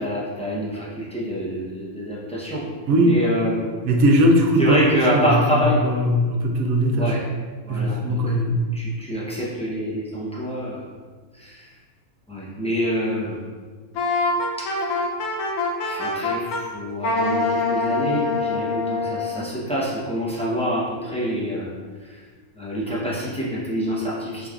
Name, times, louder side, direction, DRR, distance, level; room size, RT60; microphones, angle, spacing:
voice 1, 0.0-2.7 3.0-3.5 4.6-5.8 6.9-7.2 7.7-8.3 8.7-10.8 11.4-11.6 12.3-13.4 14.6-15.0 15.8-21.7 22.6-24.5, equal, 10° left, -7 dB, 0.4 m, -26 dB
voice 2, 2.9-3.2 3.8-7.2 7.7-8.7, equal, 75° right, 2 dB, 1.0 m, -19 dB
Wind instrument woodwind instrument, 14.0-16.6 17.0-19.4, left 3 dB, 90° left, 1.1 m, -24 dB
5.0 x 3.6 x 2.4 m, 1.5 s
omnidirectional pair, 1.5 m